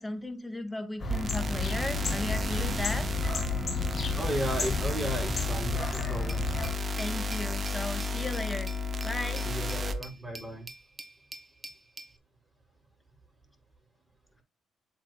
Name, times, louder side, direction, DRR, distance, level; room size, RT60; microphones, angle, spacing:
voice 1, 0.0-3.1 7.0-8.7 9.0-9.4, left 1 dB, 15° left, 7 dB, 2.1 m, -36 dB
sound 1, 1.0-6.7, left 2 dB, 45° left, 3.5 m, -33 dB
sound 2, 1.1-9.9, left 3 dB, 45° right, 1.0 m, -32 dB
voice 2, 4.2-6.5 9.4-10.7, right 1 dB, 5° right, -4 dB, 5.5 m, -35 dB
Glass, 6.3-12.2, right 2 dB, 25° right, 1.2 m, -47 dB
7.9 x 7.7 x 2.3 m, 0.24 s
hypercardioid pair, 50°, 0 cm